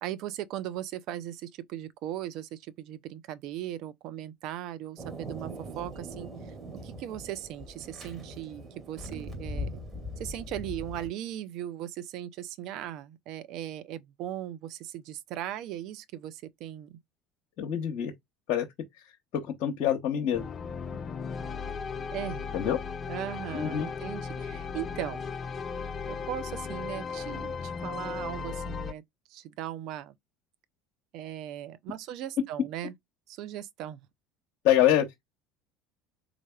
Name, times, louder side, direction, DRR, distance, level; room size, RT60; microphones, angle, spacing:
voice 1, 0.0-6.3 6.7-9.7 10.2-17.0 20.9-21.0 22.1-22.4 23.1-25.2 26.1-29.0 29.3-30.1 31.1-32.9 33.3-34.0, right 12 dB, 60° right, 0.5 m, -38 dB
Thunder, 5.0-11.1, equal, 30° right, 2.1 m, -40 dB
voice 2, 17.6-18.1 18.5-18.7 18.9-19.0 19.3-20.4 22.5-22.8 23.5-23.9 34.6-35.1, left 11 dB, 60° left, 0.8 m, -25 dB
sound 1, 20.3-28.9, left 5 dB, 35° left, 0.4 m, -36 dB
3.6 x 3.3 x 2.2 m
hypercardioid pair, 75°, 0 cm